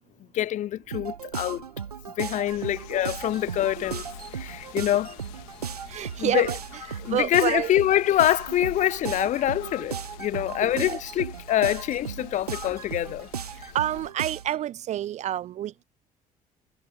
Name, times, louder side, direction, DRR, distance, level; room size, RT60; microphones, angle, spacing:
voice 1, 0.3-1.6 2.2-4.0 4.3-5.2 6.2-6.5 7.0-13.3, left 12 dB, 40° left, 0.5 m, -25 dB
sound 1, 0.9-14.6, right 7 dB, 85° right, 0.7 m, -36 dB
sound 2, 2.4-14.1, left 29 dB, 65° left, 3.4 m, -46 dB
voice 2, 5.9-6.6 7.1-7.7 10.8-11.0 13.7-15.8, right 12 dB, 40° right, 0.4 m, -28 dB
figure-of-eight pair, 50°, 19 cm